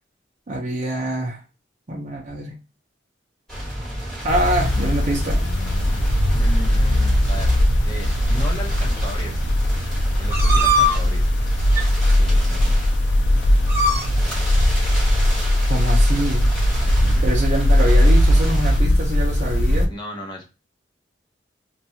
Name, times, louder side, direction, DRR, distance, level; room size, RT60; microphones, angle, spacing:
voice 1, 0.5-1.4 1.9-2.5 4.2-5.4 15.7-16.5 17.2-19.9, right 1 dB, 40° right, -2 dB, 0.6 m, -25 dB
sound 1, 3.5-18.8, equal, ahead, 1.3 m, -32 dB
sound 2, 4.3-19.9, left 1 dB, 70° left, 0.4 m, -19 dB
voice 2, 6.3-7.5 7.8-9.4 10.2-11.3 12.2-12.8 16.8-17.3 19.9-20.5, equal, 25° left, 0 dB, 0.8 m, -35 dB
sound 3, 10.3-11.0 11.7-11.9 12.7-12.8 13.0-13.3 13.6-14.1, equal, 15° right, 0.8 m, -20 dB
2.6 x 2.3 x 2.7 m, 0.30 s
head